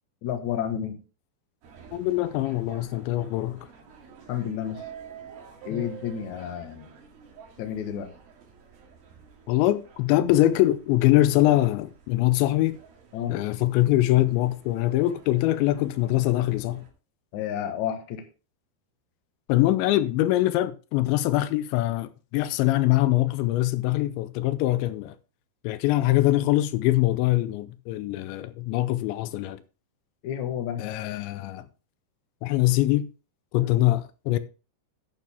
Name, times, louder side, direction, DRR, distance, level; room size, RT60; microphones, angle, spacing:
voice 1, 0.2-1.0 4.3-4.9 5.6-6.9 7.6-8.2 13.1-13.4 17.3-18.3 30.2-30.9 33.6-33.9, left 9 dB, 60° left, 2.1 m, -31 dB
sound 1, 1.6-16.9, right 7 dB, 60° right, 3.7 m, -49 dB
voice 2, 1.9-3.7 5.7-5.8 9.5-12.8 13.3-16.8 19.5-25.1 25.6-29.6 30.8-31.7 32.4-33.1 33.5-34.4, left 16 dB, 85° left, 2.9 m, -23 dB
11.5 x 9.3 x 3.5 m
omnidirectional pair, 5.2 m